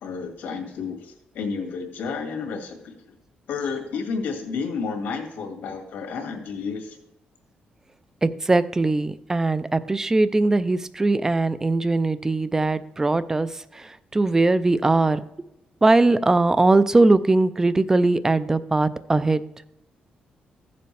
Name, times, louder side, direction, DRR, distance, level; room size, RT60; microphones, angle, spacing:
voice 1, 0.0-2.9 3.5-7.0, left 5 dB, 80° left, 3 dB, 1.8 m, -31 dB
voice 2, 8.2-15.2 15.8-19.4, right 2 dB, 15° right, 15 dB, 0.4 m, -20 dB
15.0 x 6.8 x 3.3 m, 0.83 s
cardioid pair, 110°, 3 cm